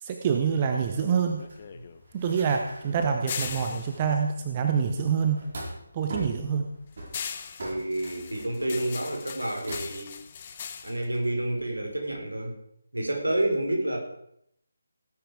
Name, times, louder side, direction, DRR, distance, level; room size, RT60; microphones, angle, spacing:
voice 1, 0.0-1.4 2.1-5.4 5.9-6.7, right 6 dB, 25° right, 4 dB, 1.0 m, -26 dB
sound 1, 0.9-5.4 5.8-12.2, left 7 dB, 30° left, 0.9 m, -40 dB
sound 2, 0.9-4.5 4.8-5.8 6.1-6.5 7.0-9.9, right 1 dB, 45° right, 4.9 m, -42 dB
voice 2, 7.6-10.1 10.8-12.5 12.9-14.0, right 1 dB, 75° right, 2 dB, 4.6 m, -29 dB
17.5 x 9.3 x 5.0 m, 0.75 s
figure-of-eight pair, 150°, 0 cm